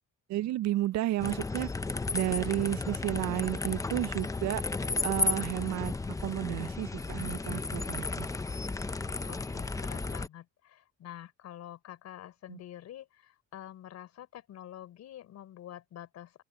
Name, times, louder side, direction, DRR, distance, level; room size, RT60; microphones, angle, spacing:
voice 1, 0.3-1.7 2.1-4.6 5.0-5.9 6.2-8.3 12.5-12.6, right 15 dB, 70° right, 0.6 m, -32 dB
sound 1, 1.2-10.3, left 3 dB, 10° left, 0.6 m, -34 dB
voice 2, 9.3-16.4, left 12 dB, 65° left, 4.5 m, -47 dB
open air
cardioid pair, 140°, 29 cm